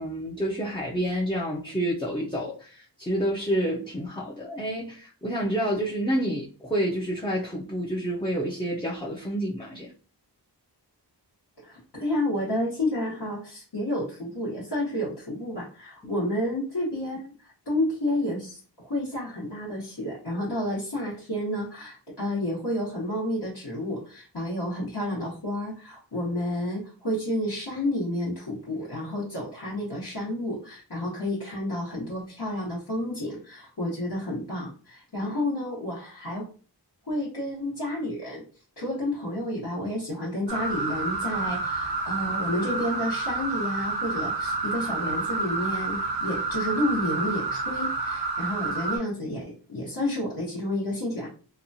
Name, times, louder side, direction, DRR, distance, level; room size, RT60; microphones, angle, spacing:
voice 1, 0.0-9.9 16.0-16.2, right 1 dB, 10° left, 0.4 m, -29 dB
voice 2, 11.6-36.5 37.1-38.4 38.8-51.3, left 1 dB, 70° left, 1.1 m, -30 dB
sound 1, 40.5-49.0, right 3 dB, 85° right, 0.7 m, -29 dB
2.8 x 2.2 x 2.6 m
wide cardioid pair, 55°, 42 cm